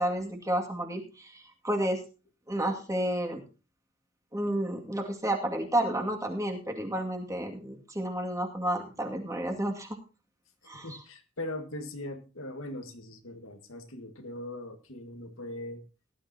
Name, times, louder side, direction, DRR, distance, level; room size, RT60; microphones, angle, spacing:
voice 1, 0.0-2.0 2.5-3.4 4.3-10.0 10.7-11.0, right 1 dB, 15° right, 2 dB, 2.3 m, -31 dB
voice 2, 10.8-15.8, left 1 dB, 75° left, 6 dB, 1.9 m, -40 dB
18.0 x 12.0 x 2.9 m, 0.32 s
head